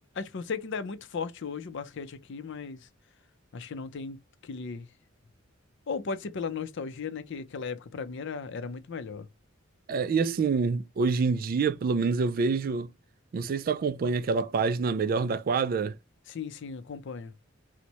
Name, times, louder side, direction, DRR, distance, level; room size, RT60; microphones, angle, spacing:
voice 1, 0.2-2.9 3.5-4.2 4.4-4.9 5.9-9.3 16.3-17.3, left 5 dB, 60° left, 0.5 m, -36 dB
voice 2, 9.9-12.9 13.3-16.0, right 4 dB, 45° right, 0.3 m, -26 dB
4.3 x 2.1 x 2.9 m
head